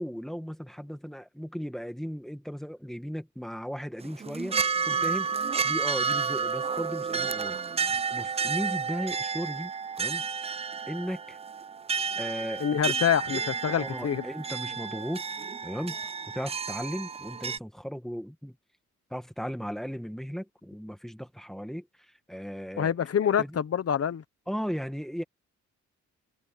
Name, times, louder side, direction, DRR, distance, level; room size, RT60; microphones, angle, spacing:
voice 1, 0.0-4.6 4.9-9.7 10.0-10.2 10.9-11.4 12.2-12.8 13.7-15.2 15.6-16.0 16.3-18.6 19.1-22.9 23.4-23.6 24.5-25.2, equal, ahead, 2.1 m, -36 dB
sound 1, 4.0-17.6, right 5 dB, 20° right, 0.4 m, -31 dB
voice 2, 12.6-14.2 22.8-24.2, left 8 dB, 50° left, 1.2 m, -26 dB
cardioid pair, 70°, 30 cm